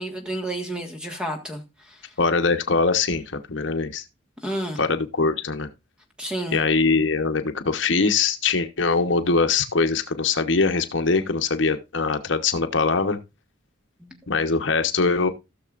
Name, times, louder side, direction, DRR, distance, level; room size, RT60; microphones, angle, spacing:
voice 1, 0.0-2.0 4.4-4.8 6.2-6.6 14.0-14.2, right 1 dB, 5° right, 1.5 m, -31 dB
voice 2, 2.2-3.2 3.5-4.0 4.8-5.7 6.5-13.2 14.3-15.3, left 4 dB, 70° left, 1.0 m, -22 dB
16.5 x 6.6 x 2.5 m
head